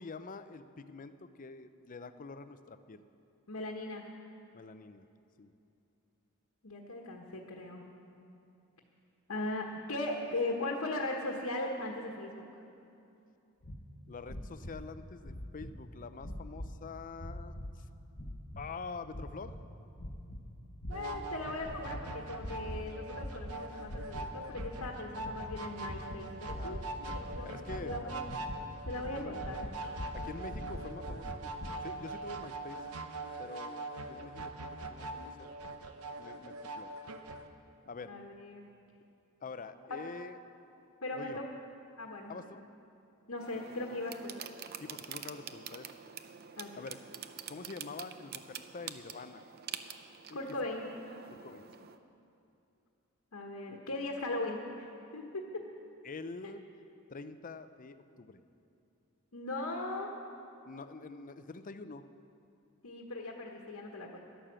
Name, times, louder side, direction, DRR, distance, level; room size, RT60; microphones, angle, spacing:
voice 1, 0.0-3.0 4.5-5.1 5.4-5.5 14.1-17.6 18.6-19.6 26.6-27.2 27.4-27.9 29.0-29.5 30.1-31.5 31.8-32.8 33.4-35.5 36.2-36.9 37.9-38.2 39.4-40.4 41.1-41.4 42.3-42.7 43.9-44.0 44.8-45.9 46.8-47.0 47.5-49.4 50.1-50.4 51.3-51.7 53.7-53.8 56.0-56.6 57.1-58.4 60.7-62.0, left 4 dB, 40° left, 11 dB, 0.5 m, -46 dB
voice 2, 3.5-4.0 6.6-7.8 9.3-12.4 20.9-27.5 27.8-28.2 28.9-29.7 38.0-38.7 41.0-41.4 42.0-42.3 43.3-44.3 46.6-46.7 50.3-50.8 53.3-54.9 55.1-55.4 56.4-56.5 59.3-60.1 62.8-64.2, left 2 dB, 75° left, 0 dB, 1.3 m, -38 dB
sound 1, 13.6-13.8 14.2-14.9 15.2-15.8 16.2-16.7 17.2-17.7 18.1-18.7 19.1-19.6 20.0-20.4 20.8-21.3 21.6-22.0 22.4-22.8 23.1-23.6 23.8-24.3 24.5-31.7, equal, 55° left, 1.2 m, -43 dB
sound 2, 20.9-37.5, right 2 dB, 75° right, 0.8 m, -43 dB
sound 3, 43.4-52.0, right 8 dB, 45° right, 0.6 m, -47 dB
11.5 x 11.5 x 7.5 m, 2.7 s
head